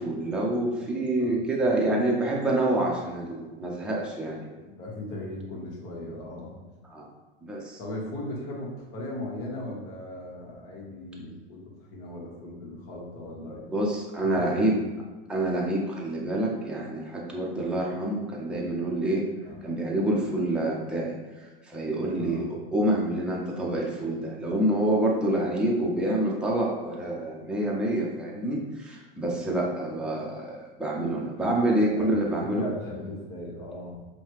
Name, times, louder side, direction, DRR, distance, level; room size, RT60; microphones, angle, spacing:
voice 1, 0.0-4.4 6.9-7.1 7.4-7.8 13.7-14.7 15.3-19.3 19.6-21.2 21.7-32.7, right 1 dB, 5° right, -4 dB, 0.7 m, -27 dB
voice 2, 4.4-6.6 7.8-13.7 14.4-15.0 19.4-19.6 22.1-22.5 31.9-33.9, left 1 dB, 50° left, -3 dB, 1.4 m, -38 dB
5.4 x 2.3 x 3.1 m, 1.3 s
supercardioid pair, 120°, 29 cm